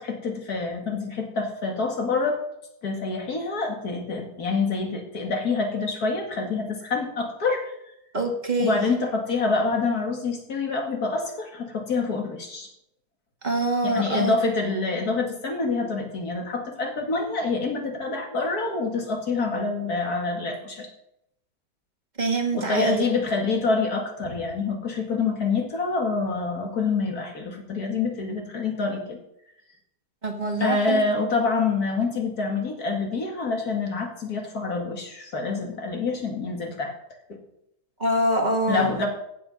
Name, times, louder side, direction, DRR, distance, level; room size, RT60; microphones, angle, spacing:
voice 1, 0.0-2.4 2.8-7.7 8.6-12.7 13.8-20.9 22.5-29.2 30.6-36.9 37.3-37.4 38.7-39.1, left 4 dB, 60° left, 2 dB, 2.6 m, -26 dB
voice 2, 8.1-8.8 13.4-14.3 22.2-23.0 30.2-31.0 38.0-38.9, right 1 dB, 25° right, 4 dB, 1.8 m, -24 dB
15.5 x 8.2 x 5.4 m, 0.79 s
omnidirectional pair, 1.8 m